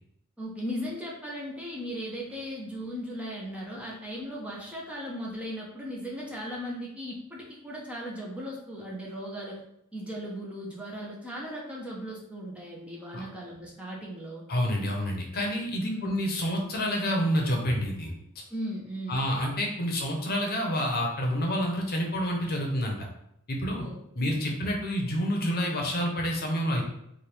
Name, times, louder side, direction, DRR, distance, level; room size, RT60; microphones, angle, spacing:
voice 1, 0.4-9.6 9.9-14.5 15.8-16.2 18.5-19.3 23.8-24.0, equal, 5° right, -4 dB, 0.6 m, -37 dB
voice 2, 14.5-18.1 19.1-23.1 23.5-23.9 24.2-26.8, equal, 45° left, 0 dB, 0.8 m, -28 dB
3.4 x 2.4 x 4.5 m, 0.77 s
head